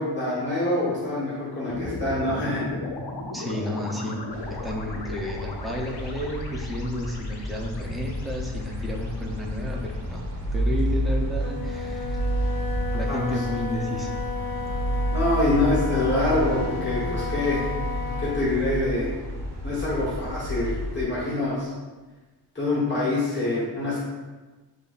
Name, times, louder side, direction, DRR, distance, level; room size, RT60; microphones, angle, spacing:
voice 1, 0.0-2.7 13.1-13.4 15.1-17.7 18.2-19.1 19.6-21.7 22.5-24.0, left 2 dB, 25° left, -8 dB, 1.0 m, -25 dB
sound 1, 1.7-10.0, left 2 dB, 65° left, 0.6 m, -37 dB
voice 2, 3.3-10.2 10.5-12.2 12.9-14.1, equal, ahead, -2 dB, 0.4 m, -32 dB
sound 2, 4.3-21.0, equal, 75° right, 1.3 m, -30 dB
Wind instrument woodwind instrument, 11.3-18.5, left 5 dB, 55° right, 0.7 m, -34 dB
6.7 x 2.5 x 2.3 m, 1.3 s
wide cardioid pair, 145°, 43 cm